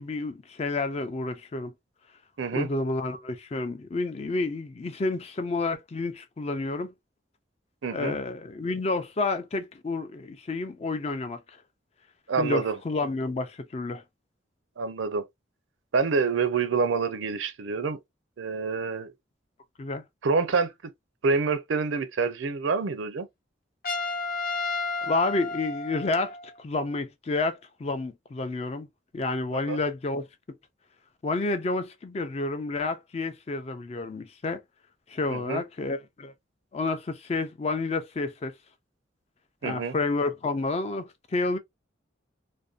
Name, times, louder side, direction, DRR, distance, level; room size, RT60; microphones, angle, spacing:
voice 1, 0.0-1.7 2.5-6.9 7.9-11.4 12.4-14.0 19.8-20.0 25.0-28.9 29.1-30.3 31.2-34.6 35.1-36.3 36.7-38.5 39.6-41.6, left 3 dB, 35° left, 0.4 m, -30 dB
voice 2, 2.4-2.7 7.8-8.2 12.3-12.8 14.8-15.3 15.9-18.0 18.4-19.1 20.2-20.7 21.2-23.3 29.5-29.8 35.3-35.6 39.6-39.9, right 4 dB, 90° right, 0.5 m, -27 dB
Trumpet, 23.8-26.5, left 3 dB, 50° left, 0.8 m, -32 dB
2.5 x 2.1 x 2.4 m
head